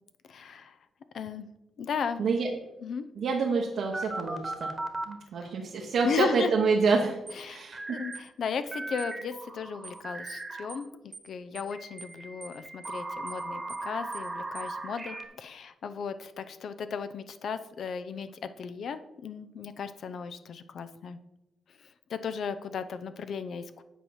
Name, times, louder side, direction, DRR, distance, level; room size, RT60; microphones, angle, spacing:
voice 1, 0.3-0.8 1.1-1.5 1.8-2.3 2.8-3.1 5.4-5.5 6.0-6.5 7.3-7.6 7.9-10.9 11.2-21.2 21.8-23.8, left 6 dB, 70° left, 11 dB, 0.6 m, -35 dB
voice 2, 2.2-2.5 3.2-4.7 5.1-8.0, right 4 dB, 75° right, -1 dB, 1.0 m, -27 dB
sound 1, 3.9-5.1 7.7-8.2 8.7-10.8 11.7-15.3, right 2 dB, 25° right, 1.2 m, -37 dB
sound 2, 7.3-7.4 8.1-8.3 9.0-9.2 9.8-10.0 10.3-10.4 10.7-10.9 11.1-11.3 11.6-11.7 12.0-12.2 12.4-12.6 12.8-13.0 13.3-13.4 13.7-13.9 14.1-14.3 14.6-14.7, right 5 dB, 45° right, 0.8 m, -45 dB
8.3 x 4.6 x 5.7 m, 0.96 s
cardioid pair, 70°, 0 cm